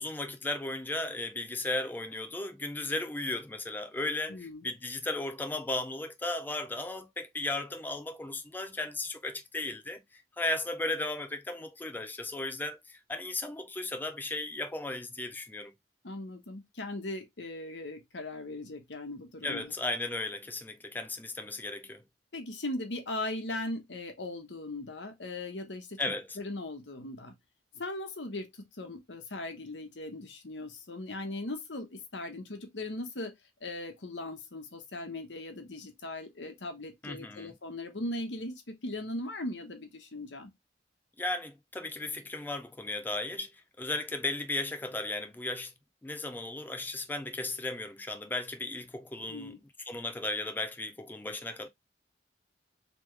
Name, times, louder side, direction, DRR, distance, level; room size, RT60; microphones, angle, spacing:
voice 1, 0.0-15.7 19.4-22.0 26.0-26.4 37.0-37.5 41.2-45.7 46.0-49.5 49.9-51.7, left 2 dB, 10° left, 0.3 m, -35 dB
voice 2, 4.3-4.6 16.0-19.7 22.3-26.0 26.4-27.3 27.7-28.5 28.8-33.3 33.6-40.5 49.3-49.6, left 2 dB, 80° left, 1.1 m, -39 dB
3.4 x 3.1 x 3.1 m
head